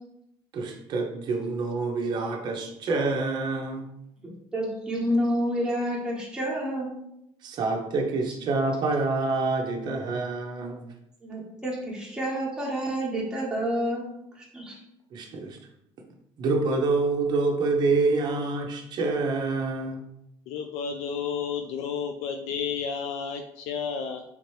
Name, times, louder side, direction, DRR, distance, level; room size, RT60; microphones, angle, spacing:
voice 1, 0.5-3.9 7.4-10.9 15.1-15.6 16.4-20.0, right 3 dB, 40° right, 2 dB, 0.6 m, -27 dB
voice 2, 4.5-6.9 11.2-14.0 14.3-14.8, equal, 5° right, -5 dB, 1.1 m, -29 dB
voice 3, 20.5-24.2, left 6 dB, 80° left, 5 dB, 0.4 m, -31 dB
3.5 x 2.9 x 3.1 m, 0.79 s
cardioid pair, 145°, 11 cm